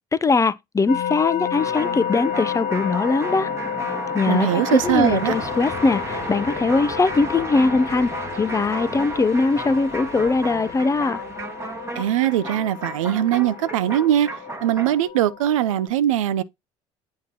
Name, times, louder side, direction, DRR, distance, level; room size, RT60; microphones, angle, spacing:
voice 1, 0.1-3.5 4.1-11.2, left 3 dB, 20° left, 0.5 m, -21 dB
sound 1, 0.9-15.9, left 9 dB, 70° left, 0.8 m, -32 dB
sound 2, 1.5-15.1, right 2 dB, 15° right, 1.1 m, -33 dB
voice 2, 4.3-5.3 12.0-14.3 14.6-16.4, right 12 dB, 85° right, 0.4 m, -21 dB
sound 3, 4.8-12.2, left 5 dB, 40° left, 1.3 m, -42 dB
8.4 x 2.9 x 4.0 m
hypercardioid pair, 65°, 16 cm